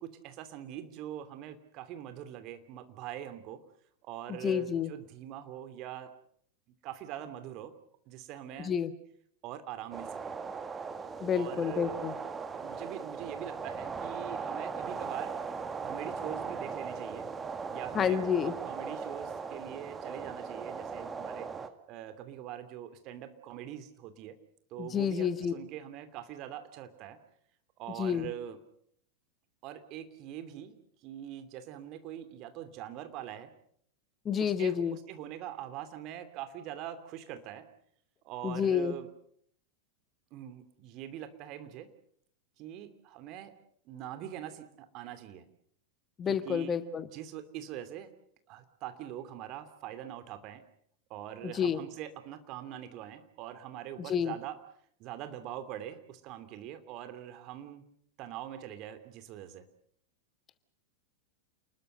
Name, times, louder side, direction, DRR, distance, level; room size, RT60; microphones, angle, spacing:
voice 1, 0.0-3.6 4.0-6.1 6.8-7.8 8.1-8.8 9.4-10.4 11.3-12.0 12.6-15.4 15.8-17.3 17.7-21.5 21.9-24.4 24.7-27.2 27.8-28.6 29.6-33.5 34.4-37.7 38.2-39.1 40.3-41.9 42.6-43.5 43.8-45.5 46.3-46.7 47.1-48.1 48.5-50.6 51.1-54.6 55.0-57.8 58.2-59.6, right 11 dB, 40° right, 10 dB, 2.7 m, -43 dB
voice 2, 4.3-4.9 8.6-8.9 11.2-12.1 17.9-18.5 24.8-25.5 28.0-28.3 34.2-35.0 38.4-38.9 46.2-47.1 51.4-51.8 54.1-54.3, left 8 dB, 25° left, 13 dB, 1.4 m, -29 dB
sound 1, 9.9-21.7, right 5 dB, 15° right, 1.9 m, -38 dB
29.5 x 21.0 x 6.6 m, 0.67 s
figure-of-eight pair, 90°, 0 cm